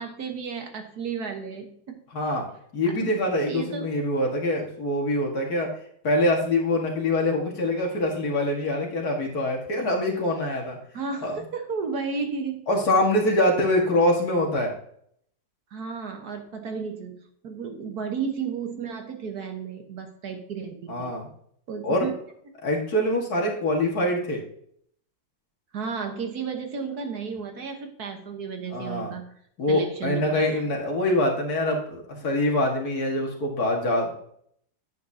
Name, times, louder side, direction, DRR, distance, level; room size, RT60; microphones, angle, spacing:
voice 1, 0.0-2.0 2.8-2.9 3.5-3.9 10.9-12.7 13.5-13.6 15.7-21.1 21.7-22.1 25.7-29.3 29.7-30.6, right 5 dB, 60° right, 4 dB, 1.6 m, -33 dB
voice 2, 2.1-2.5 2.7-5.7 6.0-10.8 11.2-11.4 12.7-14.7 20.9-21.3 21.8-22.1 22.6-24.4 28.7-29.1 29.6-34.1, left 1 dB, 55° left, 0 dB, 2.1 m, -24 dB
10.5 x 8.2 x 2.7 m, 0.66 s
omnidirectional pair, 2.0 m